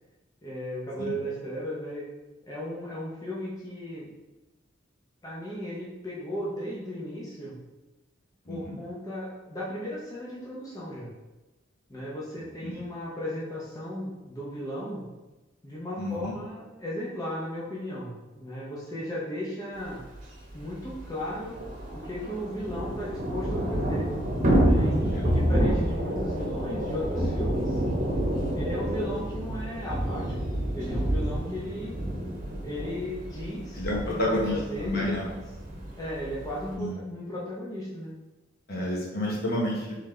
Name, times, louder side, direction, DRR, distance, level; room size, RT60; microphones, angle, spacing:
voice 1, 0.4-2.0 2.5-4.1 5.2-7.6 8.5-11.1 11.9-15.0 15.6-20.0 20.5-21.6 21.9-24.1 24.6-27.8 28.5-30.2 30.7-31.9 32.6-33.8 34.1-34.2 34.5-35.4 36.0-38.1, equal, 20° left, -7 dB, 0.7 m, -36 dB
voice 2, 16.0-16.3 25.0-25.2 28.8-29.0 31.4-31.5 33.8-34.5 34.8-35.3 36.8-36.9 38.7-40.0, left 1 dB, 50° left, -3 dB, 1.2 m, -30 dB
Thunder / Rain, 20.1-20.2 20.5-20.6 20.9-36.7, equal, 40° right, 1.0 m, -28 dB
4.0 x 3.7 x 3.2 m, 1.1 s
head